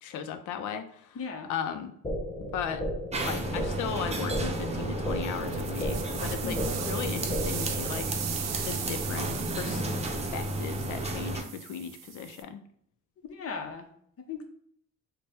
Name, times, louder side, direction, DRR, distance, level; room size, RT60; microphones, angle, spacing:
voice 1, 0.0-1.2 1.4-1.9 2.5-2.8 3.2-8.1 8.6-9.9 10.3-12.6, left 7 dB, 80° left, 10 dB, 0.5 m, -36 dB
voice 2, 1.1-1.5 6.4-6.8 13.2-13.9 14.3-14.4, left 4 dB, 50° left, 4 dB, 0.8 m, -37 dB
sound 1, 2.0-8.0, equal, 15° left, 0.6 m, -35 dB
sound 2, 3.1-11.4, right 1 dB, 20° right, 0.7 m, -33 dB
sound 3, 5.3-12.4, right 8 dB, 60° right, 0.6 m, -38 dB
4.0 x 2.2 x 3.4 m, 0.68 s
cardioid pair, 90°, 30 cm